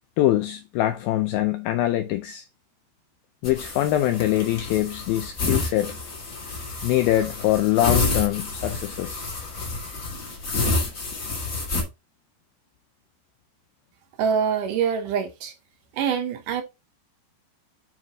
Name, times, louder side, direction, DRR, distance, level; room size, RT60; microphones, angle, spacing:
voice 1, 0.2-2.5 3.4-6.0 6.8-9.2, left 14 dB, 80° left, 2.1 m, -23 dB
sound 1, 3.4-11.8, left 3 dB, 45° left, 1.0 m, -29 dB
voice 2, 14.2-15.5 15.9-16.6, right 7 dB, 70° right, 2.1 m, -25 dB
9.2 x 4.0 x 3.7 m
omnidirectional pair, 4.8 m